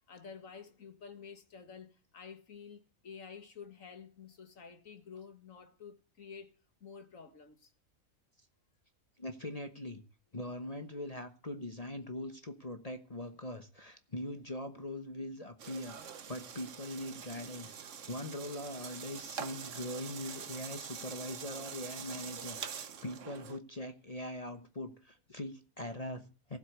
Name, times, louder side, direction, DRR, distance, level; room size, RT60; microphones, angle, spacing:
voice 1, 0.1-6.5 6.8-7.7 17.7-17.8, left 6 dB, 65° left, 2.1 m, -50 dB
voice 2, 9.2-10.0 10.3-26.6, left 1 dB, 30° left, 1.1 m, -42 dB
sound 1, 15.6-23.6, right 7 dB, 60° right, 1.3 m, -45 dB
15.5 x 8.0 x 8.0 m
omnidirectional pair, 1.5 m